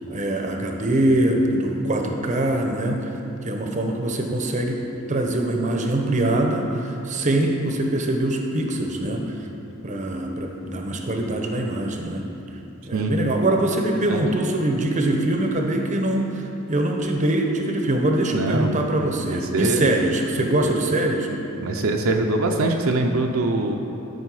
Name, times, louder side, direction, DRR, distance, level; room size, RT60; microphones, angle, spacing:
voice 1, 0.1-3.1 3.4-9.3 9.8-12.3 12.9-21.3, right 1 dB, 35° right, 3 dB, 0.7 m, -23 dB
voice 2, 13.9-14.2 18.3-18.8 19.2-19.9 21.6-23.8, right 2 dB, 65° right, 2 dB, 0.6 m, -23 dB
12.5 x 5.2 x 4.8 m, 2.9 s
head